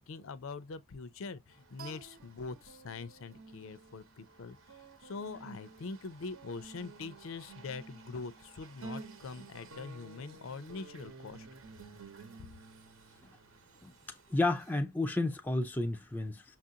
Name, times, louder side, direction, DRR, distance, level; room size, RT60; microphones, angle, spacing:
voice 1, 0.0-11.5 12.4-12.5, left 4 dB, 65° left, 0.5 m, -43 dB
sound 1, 1.5-14.8, right 4 dB, 65° right, 0.9 m, -52 dB
voice 2, 14.3-16.6, left 2 dB, 10° left, 0.3 m, -31 dB
5.8 x 2.5 x 2.7 m
head